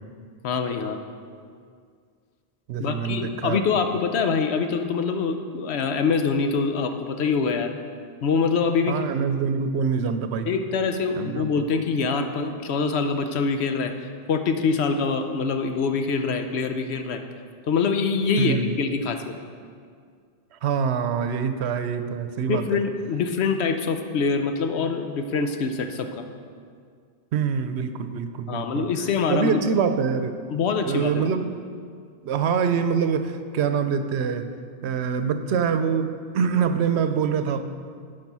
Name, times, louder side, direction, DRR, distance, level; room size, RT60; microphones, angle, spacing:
voice 1, 0.4-1.0 2.8-7.7 8.2-9.0 10.5-13.9 14.3-17.2 17.7-19.3 22.5-26.3 28.5-29.6 30.5-31.3, left 5 dB, 85° left, 6 dB, 1.0 m, -24 dB
voice 2, 2.7-3.6 8.9-10.5 11.1-11.7 18.4-18.7 20.6-22.8 27.3-28.8 29.3-30.3 30.8-31.5 32.2-34.5 34.8-37.6, right 6 dB, 90° right, 9 dB, 0.9 m, -25 dB
10.5 x 5.3 x 5.5 m, 2.1 s
omnidirectional pair, 1.1 m